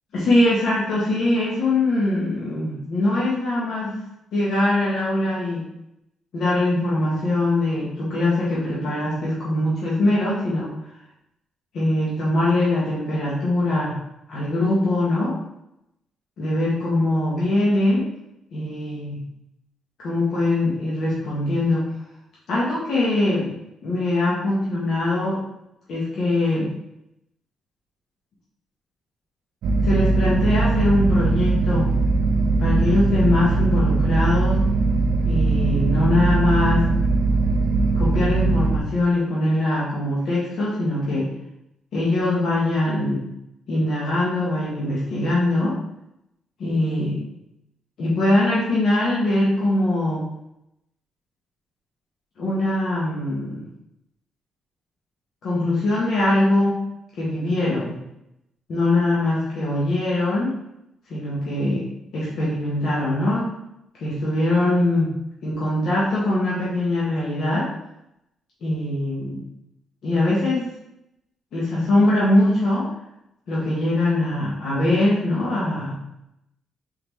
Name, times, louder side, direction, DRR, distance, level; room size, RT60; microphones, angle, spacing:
voice 1, 0.1-4.0 4.3-5.6 6.3-10.7 11.7-14.0 14.3-15.3 16.4-18.1 18.5-19.2 20.0-21.9 22.5-23.6 23.8-25.4 25.9-26.7 29.8-32.0 32.6-34.6 35.2-36.8 38.0-41.3 41.9-43.2 43.7-45.7 46.6-47.2 48.0-50.2 52.4-53.6 55.4-56.8 57.2-58.0 58.7-60.5 61.1-61.8 62.1-63.5 64.0-65.1 65.4-67.7 68.6-69.4 70.0-70.7 71.5-72.9 73.5-76.0, left 1 dB, 60° left, -7 dB, 1.0 m, -22 dB
sound 1, 29.6-38.8, right 3 dB, 80° right, 0.3 m, -20 dB
3.8 x 3.4 x 3.0 m, 0.85 s
cardioid pair, 160°, 0 cm